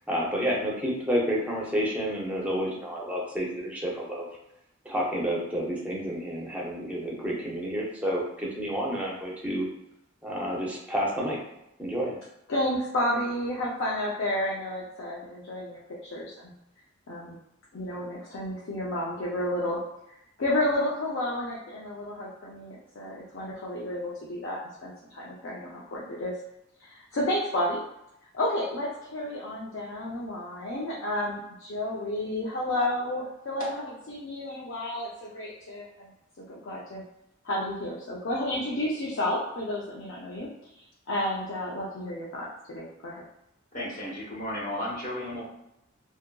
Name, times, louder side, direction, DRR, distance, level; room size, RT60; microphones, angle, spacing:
voice 1, 0.1-4.3 4.8-9.7 10.2-11.4 11.8-12.2, equal, 5° right, -3 dB, 0.5 m, -30 dB
voice 2, 12.5-16.5 17.1-17.4 17.7-19.8 20.4-26.3 26.8-27.9 28.3-36.1 36.6-37.0 37.4-40.5 41.1-43.2, left 1 dB, 70° left, -5 dB, 0.5 m, -31 dB
voice 3, 43.7-45.4, left 1 dB, 40° left, -4 dB, 0.8 m, -33 dB
2.7 x 2.5 x 2.2 m, 0.84 s
head